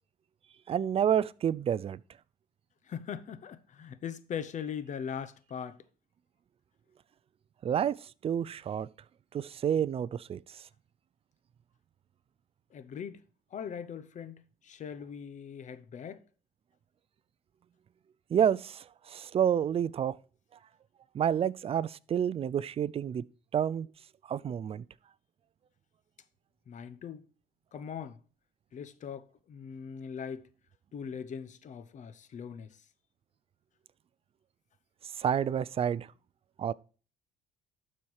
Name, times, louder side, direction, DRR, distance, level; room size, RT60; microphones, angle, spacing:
voice 1, 0.7-2.0 7.6-8.0 8.2-8.9 9.3-10.4 18.3-20.2 21.1-23.2 23.5-23.9 24.3-24.8 35.2-36.1 36.6-36.7, right 9 dB, 35° right, 0.4 m, -29 dB
voice 2, 2.9-5.8 12.7-13.2 13.5-16.2 26.7-27.2 27.7-28.2 28.7-30.5 30.9-32.8, left 7 dB, 45° left, 0.8 m, -40 dB
12.0 x 4.4 x 4.7 m
cardioid pair, 110°, 17 cm